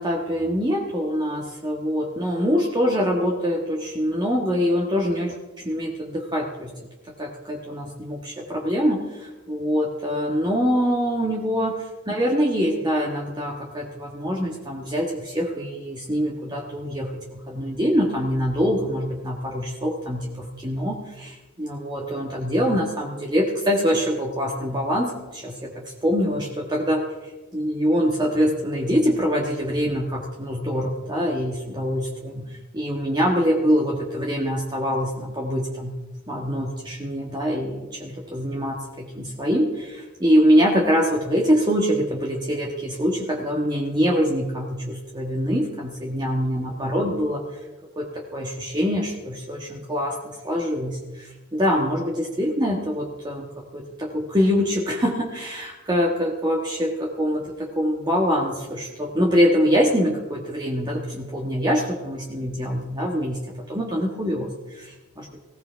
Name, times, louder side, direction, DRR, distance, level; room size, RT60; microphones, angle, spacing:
voice 1, 0.0-6.7 7.2-35.9 36.3-47.6 48.0-65.4, equal, 20° right, -1 dB, 1.6 m, -24 dB
19.5 x 16.5 x 3.5 m, 1.2 s
head